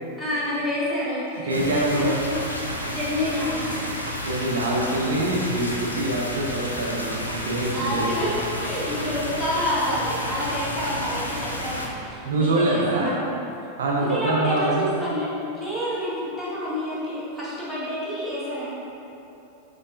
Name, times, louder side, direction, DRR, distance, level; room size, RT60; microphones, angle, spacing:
voice 1, 0.2-2.1 2.7-3.9 7.7-8.3 8.6-13.3 13.9-15.3 15.5-18.7, left 1 dB, ahead, -10 dB, 1.4 m, -28 dB
sound 1, 1.5-11.9, equal, 85° left, 0.4 m, -31 dB
voice 2, 1.5-2.2 4.2-8.2 12.2-13.1 13.8-14.9, right 2 dB, 65° right, -2 dB, 0.5 m, -24 dB
5.2 x 3.8 x 2.6 m, 2.9 s
figure-of-eight pair, 90°, 0 cm